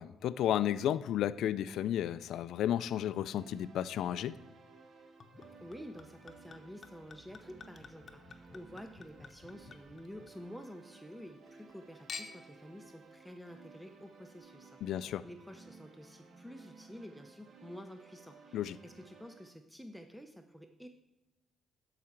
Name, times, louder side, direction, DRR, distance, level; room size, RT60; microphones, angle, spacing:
voice 1, 0.0-4.4 14.8-15.3 18.5-18.8, left 11 dB, 80° left, 16 dB, 0.3 m, -33 dB
sound 1, 3.3-19.5, right 4 dB, 55° right, 1.2 m, -58 dB
Chink clink / Liquid, 5.2-10.7 11.1-11.7 12.1-12.6 13.3-13.4, left 5 dB, 40° left, 0.9 m, -51 dB
voice 2, 5.6-20.9, equal, ahead, 6 dB, 0.6 m, -50 dB
12.5 x 4.8 x 4.4 m, 1.0 s
cardioid pair, 90°, 0 cm